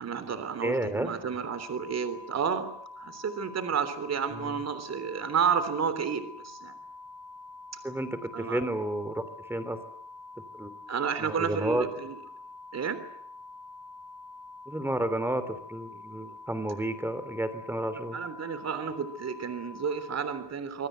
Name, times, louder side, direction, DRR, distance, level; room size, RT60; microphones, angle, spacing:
voice 1, 0.0-2.7 3.0-6.7 8.3-8.6 10.9-12.2 12.7-13.0 18.1-20.9, right 6 dB, 35° right, 11 dB, 3.4 m, -31 dB
voice 2, 0.6-1.1 4.3-4.6 7.8-9.8 10.5-10.7 11.2-11.8 14.7-18.2, right 1 dB, 5° right, 12 dB, 3.2 m, -31 dB
sound 1, 1.3-20.3, left 3 dB, 60° right, 6.1 m, -46 dB
26.0 x 24.0 x 8.1 m, 0.71 s
cardioid pair, 160°, 43 cm